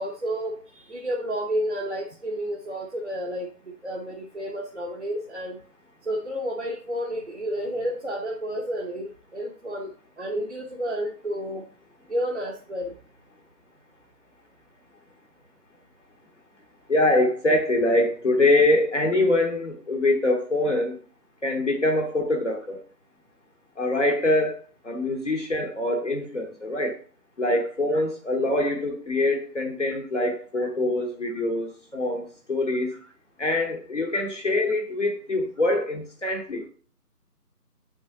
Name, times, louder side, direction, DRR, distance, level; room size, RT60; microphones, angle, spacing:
voice 1, 0.0-5.6 6.0-11.6 12.1-12.9 27.9-28.0 30.6-30.7 34.1-34.2, equal, 45° right, 1.0 m, -31 dB
voice 2, 16.9-21.0 21.4-22.8 23.8-24.6 24.8-27.0 27.4-32.9 33.4-36.7, left 2 dB, 50° left, 1.1 m, -24 dB
6.8 x 6.3 x 2.7 m
figure-of-eight pair, 165°, 48 cm